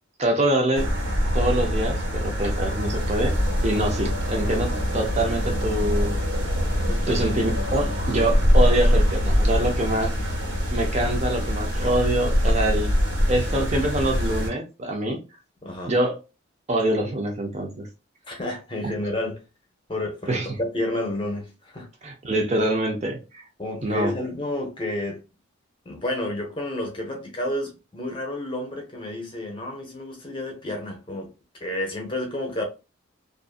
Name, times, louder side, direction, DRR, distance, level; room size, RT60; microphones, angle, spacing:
voice 1, 0.2-0.9 1.3-3.4 3.6-6.2 7.1-10.1 10.7-12.9 13.3-15.2 15.9-16.2 16.7-17.9 18.8-18.9 20.3-20.5 22.0-23.4 23.8-24.1, right 1 dB, 30° right, 0.5 m, -25 dB
sound 1, 0.7-14.5, equal, 75° right, 1.2 m, -23 dB
voice 2, 15.6-15.9 18.3-19.4 19.9-21.9 23.6-25.2 25.8-31.3 31.6-32.6, left 1 dB, 25° left, 0.7 m, -30 dB
2.5 x 2.5 x 2.3 m
head